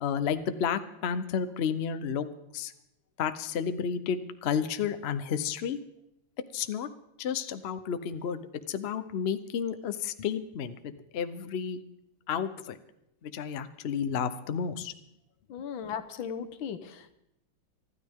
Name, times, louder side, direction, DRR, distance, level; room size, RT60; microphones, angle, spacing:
voice 1, 0.0-2.3 2.5-2.7 3.2-5.8 6.5-6.9 7.2-8.4 8.7-11.8 12.3-12.8 13.2-14.9, left 7 dB, 65° left, 9 dB, 0.6 m, -31 dB
voice 2, 15.5-17.1, left 7 dB, 80° left, 10 dB, 1.7 m, -37 dB
24.5 x 13.0 x 3.6 m, 0.82 s
omnidirectional pair, 2.2 m